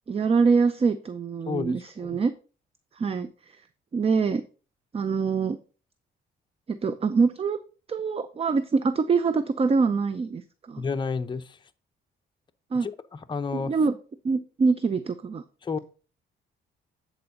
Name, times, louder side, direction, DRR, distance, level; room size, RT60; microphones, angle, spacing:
voice 1, 0.1-2.3 3.0-3.3 3.9-4.4 4.9-5.6 6.7-7.6 7.9-10.4 10.7-10.8 12.7-12.9 13.5-14.0 14.2-15.4, right 4 dB, 30° right, 13 dB, 0.6 m, -24 dB
voice 2, 1.5-2.2 10.8-11.6 12.8-13.7 15.6-15.8, left 5 dB, 25° left, 7 dB, 0.7 m, -31 dB
9.5 x 4.4 x 5.2 m, 0.36 s
cardioid pair, 90°, 20 cm